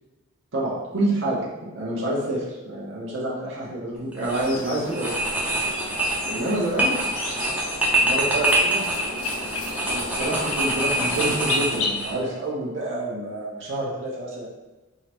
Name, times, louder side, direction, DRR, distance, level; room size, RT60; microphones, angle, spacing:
voice 1, 0.5-5.4 6.2-7.0 8.0-8.8 9.8-14.5, right 1 dB, 60° right, -5 dB, 0.9 m, -28 dB
sound 1, 4.1-4.5 4.9-12.1, right 2 dB, 5° right, 0.5 m, -25 dB
sound 2, 4.3-11.9, left 3 dB, 85° left, 0.6 m, -33 dB
3.7 x 2.1 x 4.4 m, 1.1 s
head